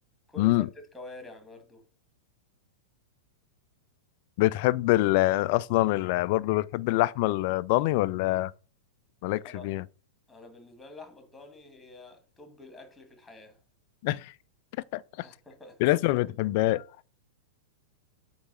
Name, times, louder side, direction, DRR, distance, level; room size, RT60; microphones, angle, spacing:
voice 1, 0.3-1.8 9.4-9.7 10.3-13.6 15.2-15.8, left 2 dB, 5° left, 1.9 m, -48 dB
voice 2, 4.4-8.5 9.2-9.8 14.0-14.3 14.9-15.3 15.8-16.8, left 18 dB, 45° left, 0.3 m, -25 dB
8.0 x 3.2 x 6.3 m
figure-of-eight pair, 95°, 0 cm